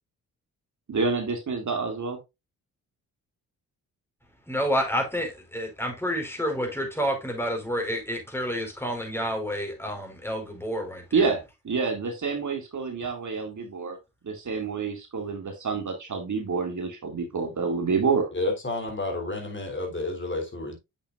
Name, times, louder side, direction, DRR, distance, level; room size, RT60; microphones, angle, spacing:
voice 1, 0.9-2.2 11.1-14.0 14.2-18.3, right 4 dB, 50° right, 2.4 m, -28 dB
voice 2, 4.5-11.0, equal, 5° left, 4.5 m, -29 dB
voice 3, 18.3-20.8, left 2 dB, 30° left, 3.8 m, -30 dB
8.0 x 6.8 x 2.5 m
supercardioid pair, 55°, 39 cm